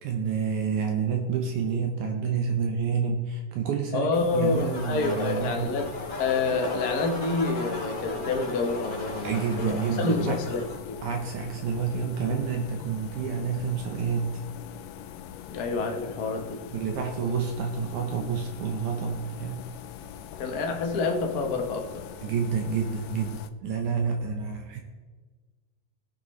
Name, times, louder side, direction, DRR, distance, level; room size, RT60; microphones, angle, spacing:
voice 1, 0.0-5.7 9.2-10.4 11.0-14.4 16.7-19.7 22.2-24.8, right 6 dB, 75° right, 3 dB, 2.2 m, -29 dB
voice 2, 3.9-5.9 6.2-11.0 15.5-16.7 20.4-22.0, left 3 dB, 70° left, 2 dB, 0.8 m, -28 dB
sound 1, 4.1-23.5, left 10 dB, 90° left, 1.5 m, -43 dB
sound 2, 4.3-10.8, left 1 dB, 20° left, 3.5 m, -37 dB
18.0 x 6.8 x 3.2 m, 1.4 s
omnidirectional pair, 3.7 m